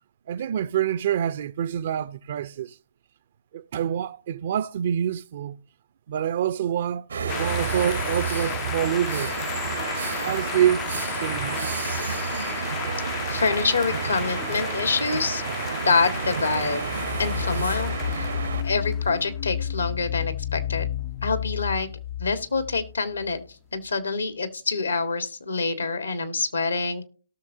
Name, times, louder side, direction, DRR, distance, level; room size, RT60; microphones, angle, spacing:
voice 1, 0.3-2.8 3.5-5.6 6.1-9.3 10.2-10.9 11.2-11.7, right 10 dB, 50° right, 0.5 m, -26 dB
sound 1, 7.1-18.6, right 6 dB, 75° right, 1.0 m, -30 dB
sound 2, 7.3-19.3, left 13 dB, 25° left, 0.3 m, -35 dB
voice 2, 13.3-15.4 15.8-16.8 17.2-18.3 18.6-20.9 21.2-21.9 22.2-23.4 23.7-27.1, left 4 dB, 80° left, 1.7 m, -26 dB
sound 3, 16.8-23.4, left 10 dB, 50° left, 1.0 m, -31 dB
18.0 x 6.5 x 2.8 m
figure-of-eight pair, 130°, 0 cm